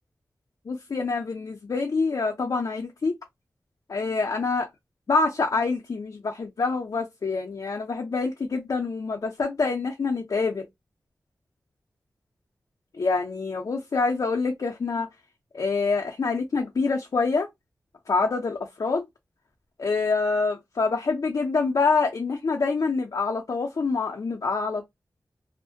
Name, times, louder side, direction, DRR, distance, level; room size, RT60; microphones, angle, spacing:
voice 1, 0.7-3.1 3.9-4.7 5.1-10.7 12.9-15.1 15.5-17.5 18.1-19.1 19.8-24.8, left 4 dB, 60° left, 0.5 m, -26 dB
2.4 x 2.1 x 2.6 m
cardioid pair, 45°, 7 cm